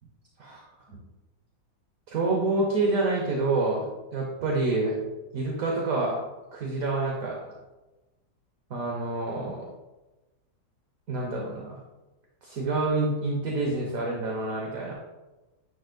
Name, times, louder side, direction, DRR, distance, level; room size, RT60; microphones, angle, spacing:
voice 1, 2.1-5.0 5.3-6.2 6.5-7.5 8.7-9.7 11.1-11.8 12.4-14.9, right 2 dB, 55° right, -1 dB, 1.3 m, -27 dB
9.8 x 5.3 x 2.2 m, 1.1 s
omnidirectional pair, 1.9 m